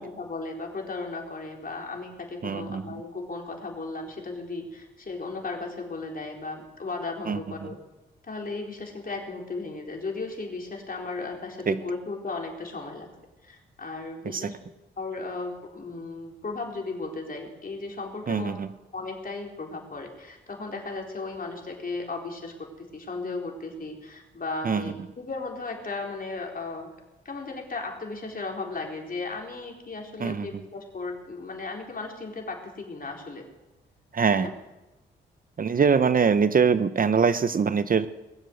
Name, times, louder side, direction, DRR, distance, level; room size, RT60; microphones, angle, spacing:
voice 1, 0.0-7.8 8.3-13.1 13.4-14.5 15.0-18.6 18.9-26.9 27.2-33.5 34.3-34.5, left 3 dB, 45° left, 1 dB, 4.0 m, -35 dB
voice 2, 2.4-2.8 7.3-7.7 11.7-11.8 14.2-14.5 18.3-18.7 24.6-24.8 30.2-30.5 34.1-34.5 35.6-38.1, right 6 dB, 45° right, 14 dB, 0.8 m, -23 dB
20.5 x 7.7 x 7.9 m, 1.0 s
supercardioid pair, 55°, 21 cm